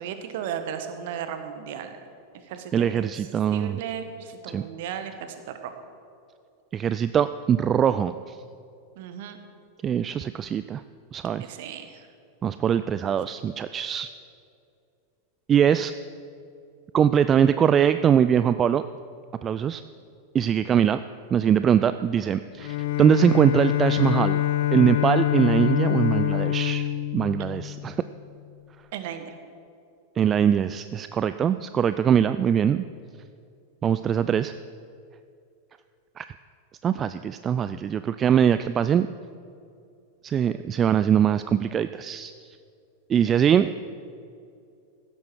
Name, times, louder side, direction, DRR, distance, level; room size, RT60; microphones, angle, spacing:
voice 1, 0.0-1.9 2.5-3.1 3.5-5.3 5.6-5.7 9.0-9.4 11.4-12.1 28.9-29.3, right 8 dB, 50° right, 8 dB, 1.3 m, -35 dB
voice 2, 2.7-3.8 4.5-4.6 6.7-8.4 9.8-10.8 11.1-11.5 12.4-14.1 15.5-15.9 16.9-18.8 19.4-19.8 20.3-21.0 21.3-24.4 24.7-26.9 27.1-28.0 30.2-32.8 33.8-34.5 36.2-36.3 36.8-39.1 40.2-42.3 43.1-43.7, right 8 dB, 25° right, 12 dB, 0.3 m, -22 dB
Bowed string instrument, 22.6-28.2, left 13 dB, 55° left, 0.6 m, -25 dB
15.5 x 12.5 x 4.6 m, 2.5 s
figure-of-eight pair, 90°, 0 cm